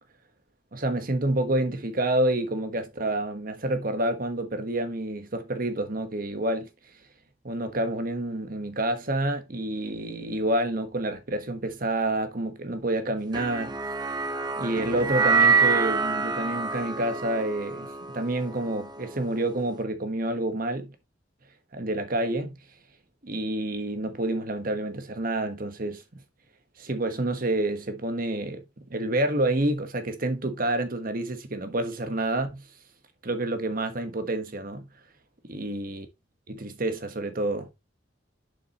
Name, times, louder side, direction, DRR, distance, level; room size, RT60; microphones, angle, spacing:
voice 1, 0.7-6.7 7.4-13.8 14.6-20.9 21.7-22.6 23.2-26.0 26.8-28.6 28.9-32.6 33.2-34.9 35.4-36.1 36.5-37.7, right 1 dB, 50° right, 1.3 m, -28 dB
sound 1, 13.3-19.7, right 5 dB, 25° right, 0.6 m, -26 dB
7.0 x 6.4 x 3.0 m
head